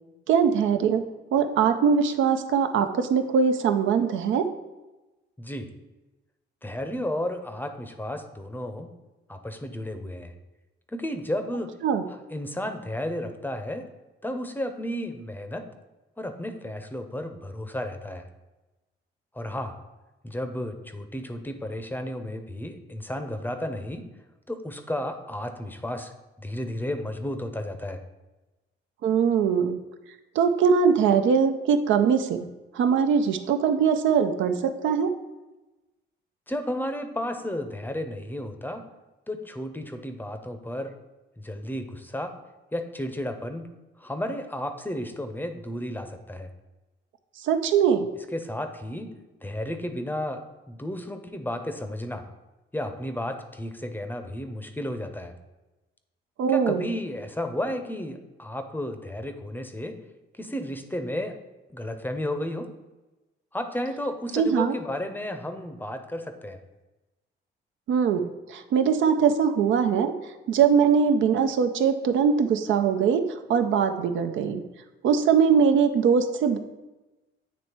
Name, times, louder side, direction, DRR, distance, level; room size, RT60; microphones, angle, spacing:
voice 1, 0.3-1.0 1.3-4.5 11.8-12.0 29.0-29.8 30.4-32.5 32.7-35.1 47.4-48.1 56.4-56.9 64.3-64.8 67.9-70.1 70.5-73.2 73.5-74.6 75.0-76.6, right 6 dB, 80° right, 8 dB, 0.6 m, -22 dB
voice 2, 5.4-5.7 6.6-8.9 9.3-10.3 10.9-11.8 12.3-13.9 14.2-15.7 16.2-18.2 19.3-19.8 20.2-24.0 24.5-28.0 36.5-38.9 39.3-40.9 41.4-42.3 42.7-43.7 44.0-46.5 48.3-49.1 49.4-52.3 52.7-55.3 56.5-60.0 60.4-61.4 61.7-62.7 63.5-66.6, left 1 dB, 10° left, 7 dB, 0.6 m, -33 dB
8.2 x 3.1 x 4.5 m, 1.1 s
cardioid pair, 90°, 20 cm